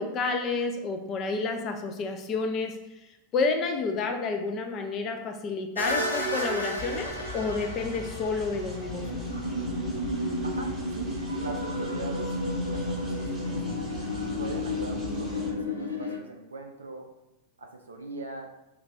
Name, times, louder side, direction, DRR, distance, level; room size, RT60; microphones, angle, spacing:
voice 1, 0.0-9.2, left 4 dB, 30° left, 5 dB, 0.4 m, -30 dB
sound 1, 5.7-16.2, left 1 dB, 85° left, 0.5 m, -32 dB
sound 2, 6.8-15.5, equal, 15° right, 0.8 m, -42 dB
voice 2, 10.4-13.6 14.4-17.1 17.6-18.5, right 3 dB, 75° right, 2 dB, 0.3 m, -41 dB
3.2 x 2.4 x 3.4 m, 0.92 s
figure-of-eight pair, 90°, 0 cm